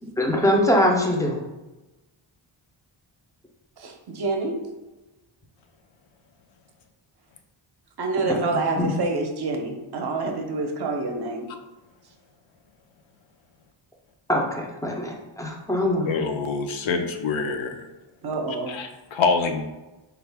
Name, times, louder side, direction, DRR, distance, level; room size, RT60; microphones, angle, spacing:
voice 1, 0.0-1.4 8.2-8.4 8.8-8.9 14.3-16.1, left 1 dB, 10° left, 0 dB, 0.4 m, -23 dB
voice 2, 3.8-4.6 8.0-11.5 18.2-18.8, right 3 dB, 55° right, 3 dB, 0.6 m, -27 dB
voice 3, 16.0-17.9 18.7-19.6, left 4 dB, 70° left, 6 dB, 0.5 m, -25 dB
3.7 x 2.4 x 3.3 m, 1.1 s
wide cardioid pair, 140°, 49 cm